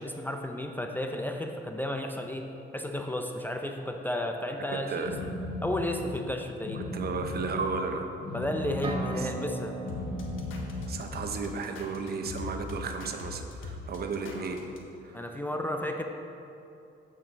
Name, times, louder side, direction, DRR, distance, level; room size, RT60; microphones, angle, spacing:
voice 1, 0.0-2.5 2.7-5.3 5.6-6.8 8.3-9.7 15.1-16.0, left 1 dB, 10° left, 4 dB, 0.5 m, -33 dB
sound 1, 5.0-11.3, left 2 dB, 50° left, 0.9 m, -37 dB
voice 2, 6.7-8.1 9.2-9.3 10.9-14.6 15.0-15.3, right 4 dB, 55° right, 5 dB, 0.7 m, -34 dB
sound 2, 8.8-12.6, right 4 dB, 25° right, 1.0 m, -39 dB
sound 3, 9.9-14.8, left 3 dB, 80° left, 1.0 m, -40 dB
8.3 x 5.2 x 4.0 m, 2.8 s
cardioid pair, 90°, 20 cm